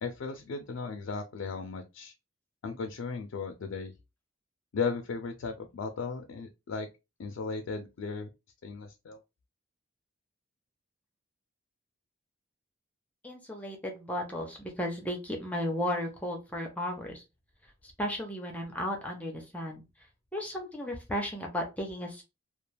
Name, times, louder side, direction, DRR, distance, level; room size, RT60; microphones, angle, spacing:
voice 1, 0.0-2.1 2.6-3.9 4.7-6.9 7.2-8.3 8.6-9.2, left 4 dB, 70° left, 0.4 m, -36 dB
voice 2, 13.2-17.2 18.0-19.8 20.3-22.2, equal, 5° left, 0.5 m, -34 dB
2.4 x 2.2 x 3.2 m
head